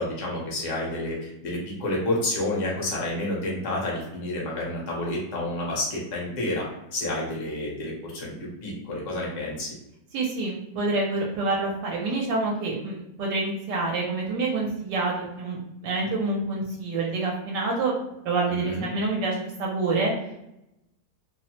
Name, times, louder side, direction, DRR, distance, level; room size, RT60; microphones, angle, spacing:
voice 1, 0.0-6.7 6.9-9.7 18.5-18.8, left 1 dB, 55° left, -3 dB, 1.0 m, -29 dB
voice 2, 10.1-17.9 18.2-20.1, right 3 dB, 80° right, -2 dB, 1.2 m, -27 dB
2.9 x 2.0 x 2.8 m, 0.87 s
omnidirectional pair, 1.8 m